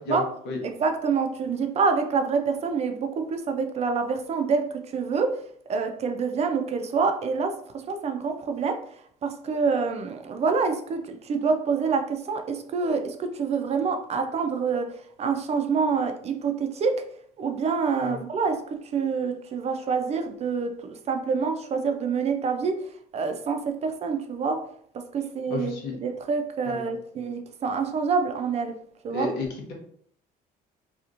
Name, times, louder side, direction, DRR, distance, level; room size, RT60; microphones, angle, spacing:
voice 1, 0.1-0.6 18.0-18.1 25.5-26.0 26.6-26.9 29.1-29.7, left 2 dB, 90° left, 1 dB, 0.8 m, -32 dB
voice 2, 0.6-5.4 5.7-8.8 9.2-17.0 17.4-22.9 23.1-24.6 24.9-28.8 29.0-29.3, right 5 dB, 40° right, 6 dB, 0.4 m, -27 dB
2.9 x 2.4 x 2.5 m, 0.63 s
cardioid pair, 110°, 17 cm